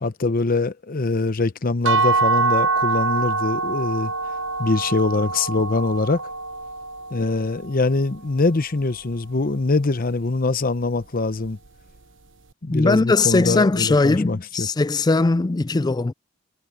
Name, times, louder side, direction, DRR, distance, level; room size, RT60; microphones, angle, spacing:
voice 1, 0.0-4.1 4.6-6.2 7.1-11.6 12.6-14.7, left 3 dB, 45° left, 0.9 m, -23 dB
sound 1, 1.9-7.7, right 3 dB, 65° right, 0.9 m, -24 dB
voice 2, 12.7-16.1, left 3 dB, 20° left, 0.3 m, -19 dB
head